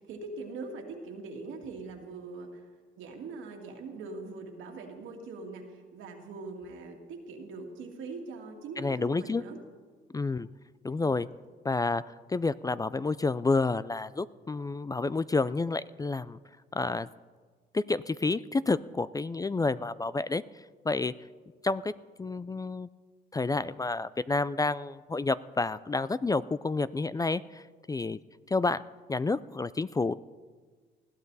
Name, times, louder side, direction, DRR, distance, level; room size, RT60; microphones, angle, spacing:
voice 1, 0.0-2.7 3.0-9.6 11.0-11.2, right 3 dB, 85° right, 2 dB, 2.3 m, -42 dB
voice 2, 8.8-9.4 10.1-10.5 10.8-11.3 11.6-16.4 16.7-17.1 17.7-20.4 20.8-21.1 21.6-21.9 22.2-22.9 23.3-28.2 28.5-28.8 29.1-30.1, left 3 dB, 20° left, 17 dB, 0.3 m, -29 dB
20.5 x 14.0 x 4.1 m, 1.5 s
cardioid pair, 90°, 20 cm